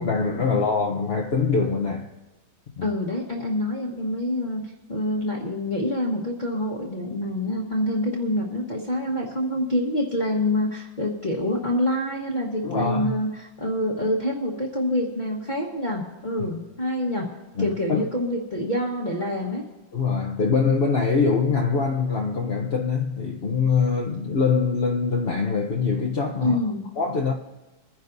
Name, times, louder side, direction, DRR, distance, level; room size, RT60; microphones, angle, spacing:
voice 1, 0.0-2.1 2.8-2.9 12.6-13.2 17.5-18.1 19.9-26.6 27.0-27.3, left 5 dB, 45° left, 0.8 m, -23 dB
voice 2, 2.8-4.6 4.9-17.3 17.6-19.6 26.4-26.9, left 1 dB, 25° left, 1.3 m, -26 dB
24.5 x 10.5 x 2.7 m
omnidirectional pair, 2.1 m